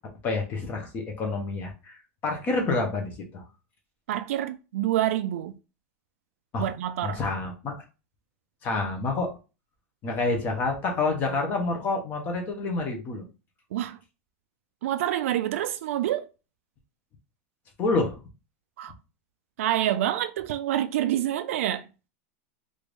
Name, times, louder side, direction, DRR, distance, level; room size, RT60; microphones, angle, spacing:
voice 1, 0.2-3.4 6.5-6.7 7.0-7.7 8.6-9.3 10.0-13.2 17.8-18.2, left 3 dB, 25° left, 0.7 m, -28 dB
voice 2, 4.1-5.5 6.6-7.2 13.7-14.0 14.8-16.3 18.8-18.9 19.6-21.9, right 12 dB, 70° right, 0.3 m, -27 dB
3.3 x 2.5 x 3.2 m
supercardioid pair, 170°, 8 cm